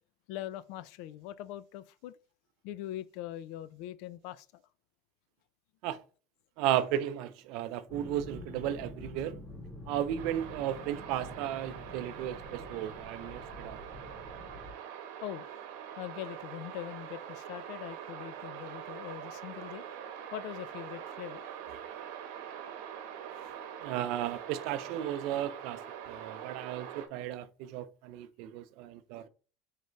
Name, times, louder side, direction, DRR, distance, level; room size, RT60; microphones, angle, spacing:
voice 1, 0.3-2.2 2.6-4.6 15.2-15.5 16.0-19.8 20.3-21.5, left 13 dB, 65° left, 0.4 m, -42 dB
voice 2, 6.6-9.4 9.9-13.8 23.4-23.5 23.8-29.3, right 11 dB, 60° right, 0.4 m, -34 dB
sound 1, 7.9-14.7, left 1 dB, 5° left, 1.6 m, -47 dB
sound 2, 10.2-27.1, right 9 dB, 80° right, 0.9 m, -44 dB
4.0 x 3.8 x 3.2 m
cardioid pair, 160°, 0 cm